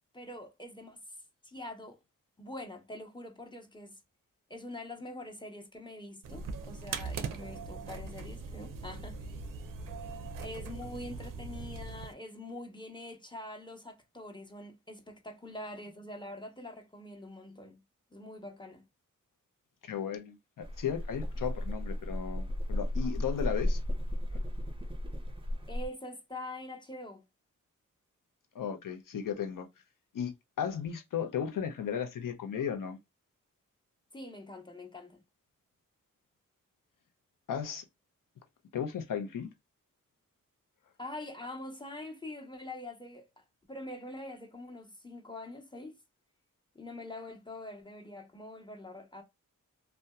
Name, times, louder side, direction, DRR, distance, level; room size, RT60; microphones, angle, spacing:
voice 1, 0.1-1.0 1.4-2.0 2.4-4.0 4.5-9.4 10.4-17.8 18.1-18.8 25.7-27.2 34.1-35.2 41.0-46.0 46.7-49.2, left 1 dB, 15° left, 0.8 m, -44 dB
sound 1, 6.2-12.1, right 4 dB, 85° right, 0.5 m, -40 dB
voice 2, 19.8-23.8 24.3-24.4 28.5-29.7 30.1-33.0 37.5-37.8 38.7-39.5, left 8 dB, 80° left, 0.6 m, -35 dB
sound 2, 20.6-25.9, left 1 dB, 15° right, 0.5 m, -34 dB
2.7 x 2.1 x 2.2 m
cardioid pair, 40°, 32 cm